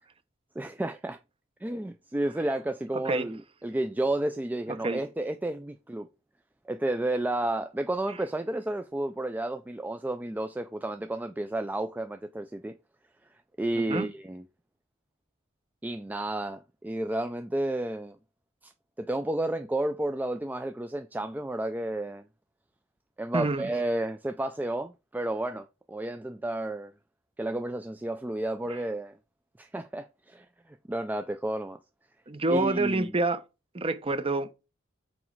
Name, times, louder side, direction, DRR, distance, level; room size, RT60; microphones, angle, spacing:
voice 1, 0.6-1.2 1.6-6.1 6.7-12.7 13.6-14.4 15.8-18.2 18.6-18.7 19.0-22.2 23.2-26.9 27.4-29.2 29.6-31.8 32.5-33.1, right 1 dB, 10° right, 0.3 m, -31 dB
voice 2, 2.9-3.3 4.7-5.0 13.7-14.1 23.3-23.7 28.7-28.8 32.3-33.4 33.7-34.5, right 2 dB, 25° right, 0.7 m, -28 dB
6.2 x 4.9 x 4.5 m
head